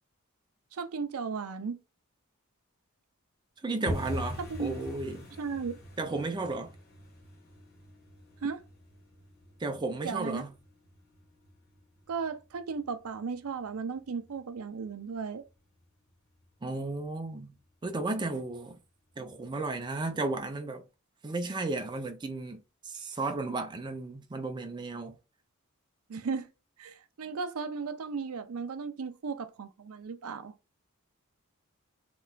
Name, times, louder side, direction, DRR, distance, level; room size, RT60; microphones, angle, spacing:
voice 1, 0.7-1.8 4.5-4.8 5.4-5.8 8.4-8.6 10.0-10.4 12.1-15.4 26.1-26.5 26.8-30.5, right 5 dB, 75° right, 0.5 m, -35 dB
voice 2, 3.6-5.3 6.0-6.7 9.6-10.5 16.6-17.6 17.8-18.8 19.2-20.8 21.2-25.2, right 3 dB, 20° right, 0.4 m, -34 dB
sound 1, 3.9-14.6 14.8-15.5 15.8-16.1 16.3-16.7 17.0-17.1 17.6-18.2 18.5-18.6 19.1-19.2, left 1 dB, 45° left, 1.3 m, -43 dB
3.3 x 2.9 x 2.3 m
head